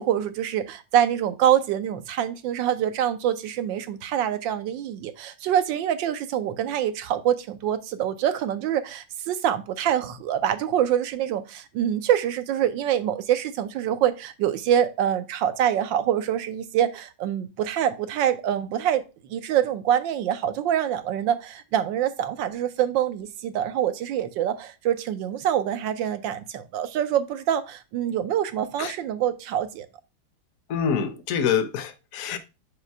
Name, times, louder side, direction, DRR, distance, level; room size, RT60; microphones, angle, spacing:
voice 1, 0.0-19.0 19.3-29.9, right 10 dB, 75° right, 1.4 m, -25 dB
voice 2, 30.7-32.4, left 7 dB, 55° left, 1.0 m, -26 dB
5.6 x 4.9 x 4.5 m
omnidirectional pair, 2.1 m